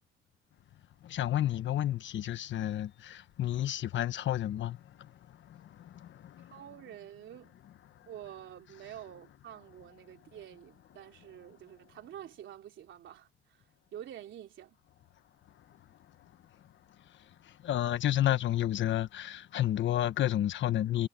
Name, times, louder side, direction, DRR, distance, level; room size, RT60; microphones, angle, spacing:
voice 1, 1.0-6.6 7.9-8.1 15.5-21.1, left 12 dB, 70° left, 1.3 m, -32 dB
voice 2, 6.4-7.5 8.1-13.6 13.9-14.8, right 11 dB, 75° right, 3.4 m, -48 dB
cardioid pair, 90°, 20 cm